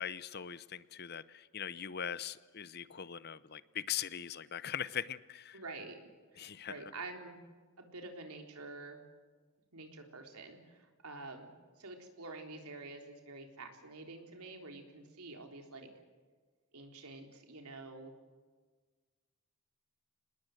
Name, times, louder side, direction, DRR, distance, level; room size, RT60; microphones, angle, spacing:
voice 1, 0.0-5.6 6.4-6.7, left 9 dB, 45° left, 16 dB, 0.7 m, -41 dB
voice 2, 5.5-6.0 6.3-7.4 7.8-9.0 9.7-11.5 11.8-15.9 16.7-18.1, right 3 dB, 85° right, 3 dB, 3.7 m, -48 dB
27.0 x 20.0 x 7.8 m, 1.4 s
head